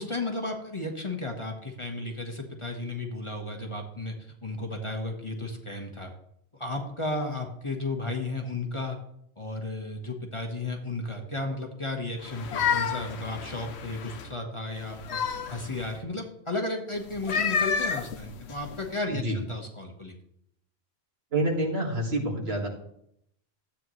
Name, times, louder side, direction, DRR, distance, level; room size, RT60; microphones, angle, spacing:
voice 1, 0.0-4.1 4.4-6.1 6.6-9.0 9.4-15.2 15.5-20.1, left 2 dB, 25° left, 2 dB, 1.3 m, -34 dB
sound 1, 12.2-14.3 14.8-16.0 17.1-18.9, left 6 dB, 70° left, 1.0 m, -30 dB
voice 2, 21.3-22.7, right 1 dB, 65° right, 0 dB, 2.2 m, -27 dB
13.0 x 8.8 x 3.2 m, 0.72 s
omnidirectional pair, 1.1 m